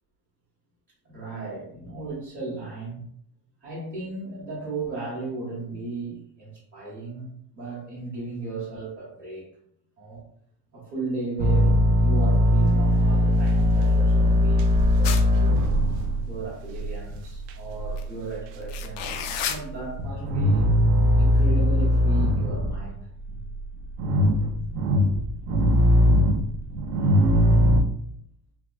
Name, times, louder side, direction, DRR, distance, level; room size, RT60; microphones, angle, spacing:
voice 1, 1.0-3.0 3.6-9.5 10.0-10.2 10.7-11.7 12.0-15.6 16.3-20.7 21.2-23.0, right 3 dB, 20° right, -9 dB, 1.0 m, -35 dB
sound 1, 11.4-18.1 18.3-19.3 19.7-22.9 23.2-27.8, equal, 70° right, 0.5 m, -20 dB
sound 2, 15.0-15.6 18.0-18.1 18.6-19.6, left 8 dB, 75° left, 0.5 m, -31 dB
3.5 x 2.3 x 2.4 m, 0.69 s
cardioid pair, 175°, 45 cm